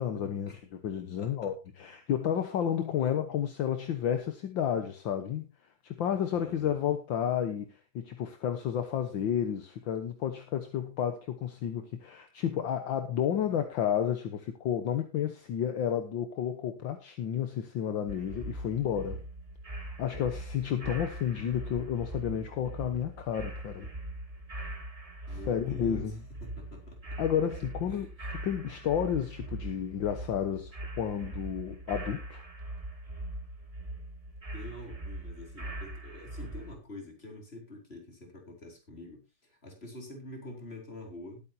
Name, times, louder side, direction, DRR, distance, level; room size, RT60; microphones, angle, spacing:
voice 1, 0.0-5.5 5.8-19.2 19.8-23.9 25.3-26.2 27.2-32.4, left 9 dB, 65° left, 1.8 m, -31 dB
voice 2, 6.3-6.8 25.3-26.1 26.4-27.2 27.9-28.3 34.5-41.4, left 1 dB, 30° left, 4.2 m, -46 dB
sound 1, 18.1-36.7, right 1 dB, 15° right, 1.8 m, -41 dB
20.0 x 8.9 x 2.8 m
omnidirectional pair, 2.3 m